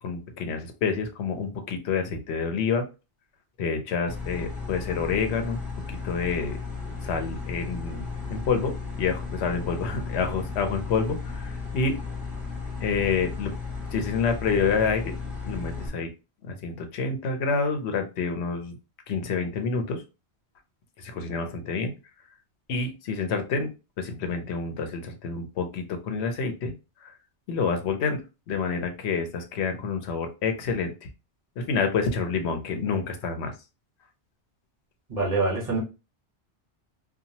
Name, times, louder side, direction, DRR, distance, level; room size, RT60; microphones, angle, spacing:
voice 1, 0.0-2.9 3.6-5.6 5.9-6.6 7.0-12.0 12.8-13.5 13.9-15.1 15.4-16.1 16.4-18.8 19.1-20.0 21.0-21.9 22.7-23.7 24.0-26.7 27.0-27.1 27.5-28.2 28.5-30.9 31.6-33.5, left 5 dB, 85° left, 6 dB, 0.9 m, -28 dB
sound 1, 4.1-15.9, left 4 dB, ahead, 1.0 m, -35 dB
voice 2, 35.1-35.8, right 3 dB, 45° right, -3 dB, 1.4 m, -25 dB
2.8 x 2.3 x 2.7 m, 0.29 s
omnidirectional pair, 1.1 m